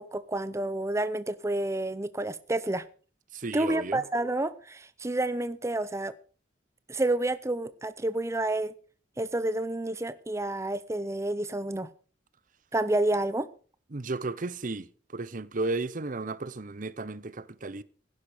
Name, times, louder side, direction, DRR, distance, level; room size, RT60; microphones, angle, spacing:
voice 1, 0.0-2.8 3.5-6.1 6.9-8.7 9.2-11.9 12.7-13.5, right 2 dB, 15° right, 0.6 m, -29 dB
voice 2, 3.3-4.0 13.9-17.8, right 3 dB, 45° right, 0.8 m, -34 dB
16.5 x 10.5 x 5.0 m
head